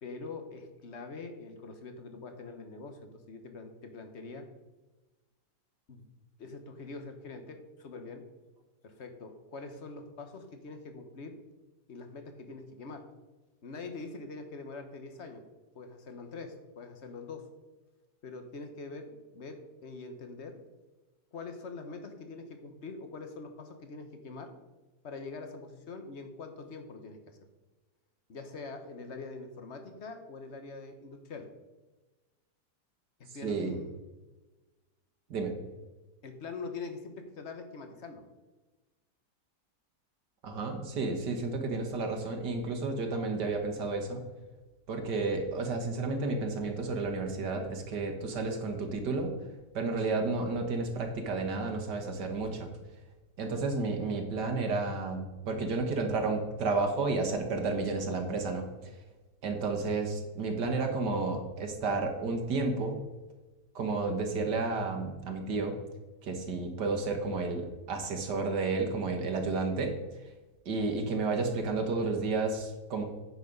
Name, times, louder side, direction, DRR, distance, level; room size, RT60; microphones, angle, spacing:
voice 1, 0.0-4.4 5.9-6.0 6.4-8.2 8.8-11.4 11.9-13.0 13.6-15.4 15.7-17.4 18.2-20.6 21.3-24.5 25.0-27.4 28.3-31.5 33.3-33.9 36.2-38.2, left 3 dB, 45° left, 6 dB, 1.3 m, -44 dB
voice 2, 33.4-33.8 35.3-35.5 40.4-44.2 44.9-49.3 49.7-52.7 53.4-58.9 59.4-63.0 63.8-65.7 66.2-70.0 70.7-73.0, right 3 dB, 70° right, 4 dB, 2.0 m, -31 dB
9.7 x 6.9 x 5.3 m, 1.2 s
omnidirectional pair, 1.9 m